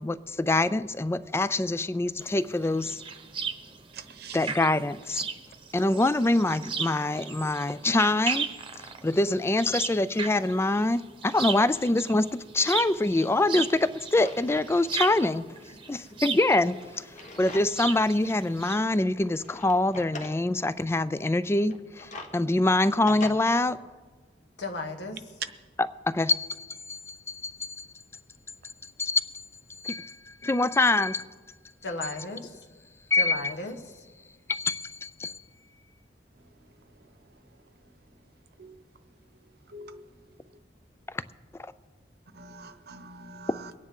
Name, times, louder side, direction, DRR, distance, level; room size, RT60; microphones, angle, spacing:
voice 1, 0.0-3.0 4.3-5.2 5.7-8.5 9.0-13.7 14.1-15.4 15.9-17.1 17.4-23.8 25.8-27.9 29.0-29.2 29.8-30.2 30.4-31.2 33.1-33.3 34.5-35.4, left 2 dB, 15° left, 15 dB, 0.3 m, -25 dB
sound 1, 2.2-18.8, right 5 dB, 30° right, 0.9 m, -36 dB
voice 2, 3.9-4.4 38.6-38.7 39.7-40.0 42.3-43.7, right 3 dB, 65° right, 10 dB, 0.9 m, -44 dB
Drawer open or close, 12.7-12.8 13.3-14.7 15.1-15.2 16.2-17.9 18.4-18.5 19.2-20.4 21.6-23.3, left 2 dB, 45° left, 1.2 m, -43 dB
voice 3, 24.6-25.4 31.8-32.6 33.1-34.0, left 2 dB, 70° left, 4 dB, 1.2 m, -36 dB
23.5 x 9.6 x 3.8 m, 1.4 s
head